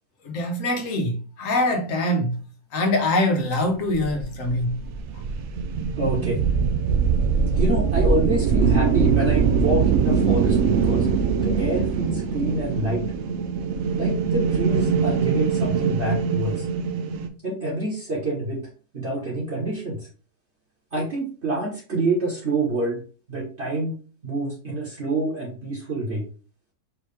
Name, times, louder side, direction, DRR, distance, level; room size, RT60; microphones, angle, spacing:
voice 1, 0.2-2.3 2.7-4.8, left 1 dB, 60° left, 1.4 m, -23 dB
sound 1, 3.9-17.3, right 6 dB, 65° right, 0.7 m, -22 dB
voice 2, 6.0-6.4 7.5-11.1 11.4-13.0 13.9-16.6 17.4-18.6 18.9-20.1 20.9-23.0 23.3-23.9 24.2-26.3, right 2 dB, 45° right, 1.6 m, -27 dB
4.8 x 3.1 x 3.3 m
omnidirectional pair, 1.6 m